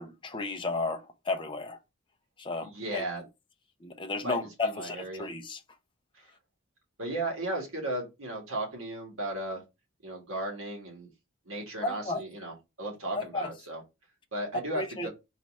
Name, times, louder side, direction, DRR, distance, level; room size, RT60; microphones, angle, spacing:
voice 1, 0.0-1.8 2.4-3.0 3.8-5.6 11.8-12.2 13.1-13.5 14.8-15.1, left 3 dB, 20° left, 0.5 m, -33 dB
voice 2, 2.6-3.2 4.2-5.3 6.1-6.3 7.0-9.6 10.0-11.1 11.4-13.8 14.3-15.1, right 1 dB, 65° right, 1.6 m, -35 dB
4.0 x 2.4 x 4.0 m
head